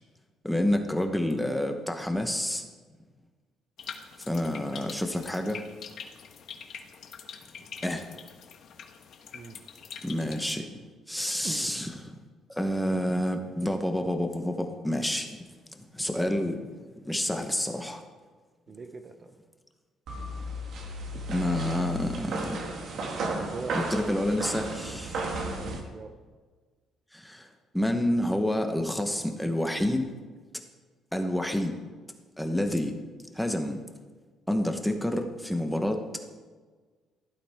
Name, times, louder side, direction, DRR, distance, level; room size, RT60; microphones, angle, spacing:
voice 1, 0.4-2.7 4.3-5.6 7.8-8.1 10.0-10.7 11.1-12.1 12.5-15.4 15.9-16.7 17.0-18.0 21.3-22.6 23.9-25.2 27.1-27.5 27.7-30.1 31.1-31.8 32.4-32.9 33.3-33.8 34.5-36.0, left 1 dB, ahead, 5 dB, 1.0 m, -28 dB
sound 1, 3.8-10.5, left 7 dB, 50° left, 1.2 m, -44 dB
voice 2, 9.3-9.6 11.4-11.8 18.7-19.3 23.2-23.9 25.6-26.1, right 4 dB, 25° right, 6 dB, 0.7 m, -41 dB
sound 2, 20.1-25.8, right 1 dB, 50° right, 1.9 m, -34 dB
16.0 x 12.0 x 3.6 m, 1.4 s
cardioid pair, 175°, 0 cm